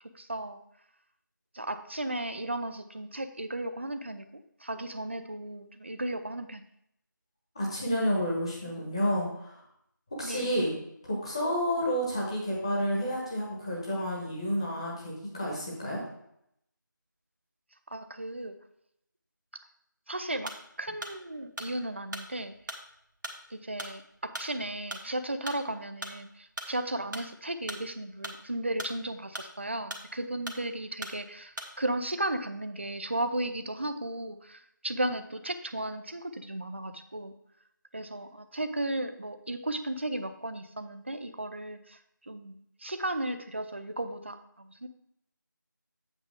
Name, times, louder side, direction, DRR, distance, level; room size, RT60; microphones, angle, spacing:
voice 1, 0.1-0.6 1.5-6.6 10.2-10.5 17.9-18.5 20.1-22.5 23.5-37.3 37.9-44.9, right 1 dB, 35° right, 9 dB, 0.5 m, -35 dB
voice 2, 7.5-9.6 10.2-10.7 11.0-16.0, equal, 15° left, -4 dB, 1.4 m, -30 dB
sound 1, 20.4-32.0, right 1 dB, 70° right, 1.4 m, -41 dB
8.2 x 6.8 x 3.5 m, 0.75 s
figure-of-eight pair, 175°, 11 cm